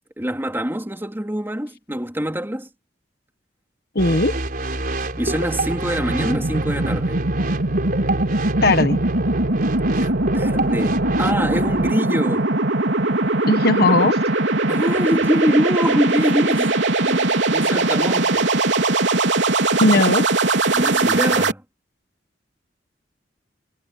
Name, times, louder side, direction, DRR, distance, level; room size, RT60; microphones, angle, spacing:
voice 1, 0.2-2.7 5.2-7.2 10.0-12.5 14.7-18.5 20.7-21.6, equal, 10° right, 3.5 m, -24 dB
voice 2, 3.9-4.3 8.6-9.0 13.5-14.2 19.8-20.2, left 2 dB, 60° left, 1.3 m, -17 dB
sound 1, 4.0-11.9, right 2 dB, 50° right, 4.5 m, -27 dB
sound 2, 5.0-21.5, right 2 dB, 90° right, 3.5 m, -21 dB
head